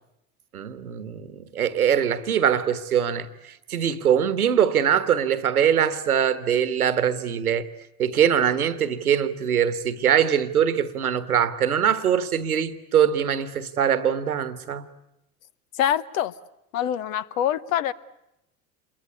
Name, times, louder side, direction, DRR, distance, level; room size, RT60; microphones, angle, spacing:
voice 1, 0.5-7.7 8.0-14.9, right 8 dB, 80° right, 1.4 m, -22 dB
voice 2, 15.7-16.3 16.7-17.9, left 10 dB, 65° left, 1.1 m, -25 dB
28.0 x 22.5 x 8.3 m
figure-of-eight pair, 70°, 43 cm